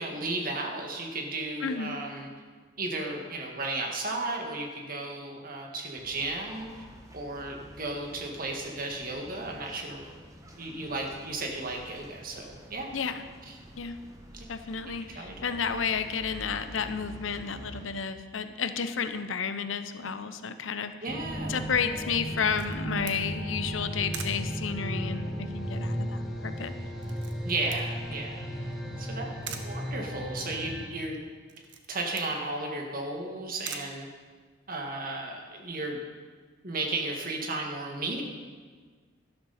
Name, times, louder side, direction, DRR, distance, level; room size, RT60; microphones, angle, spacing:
voice 1, 0.0-2.3 2.8-6.7 7.1-10.1 10.6-12.9 13.5-13.6 14.3-14.4 14.8-15.3 21.0-21.7 27.4-28.7 29.0-31.2 31.9-34.1 34.7-36.0 36.6-38.2, right 2 dB, 45° right, 1 dB, 1.9 m, -34 dB
voice 2, 1.6-2.0 12.9-13.2 13.8-14.0 14.5-20.9 21.5-26.7, left 6 dB, 90° left, 10 dB, 0.8 m, -32 dB
sound 1, 5.9-17.9, equal, 15° right, 1.3 m, -49 dB
sound 2, 21.1-30.9, equal, ahead, 2.1 m, -35 dB
Camera, 22.3-34.8, right 7 dB, 65° right, 1.0 m, -46 dB
12.5 x 12.0 x 4.2 m, 1.5 s
head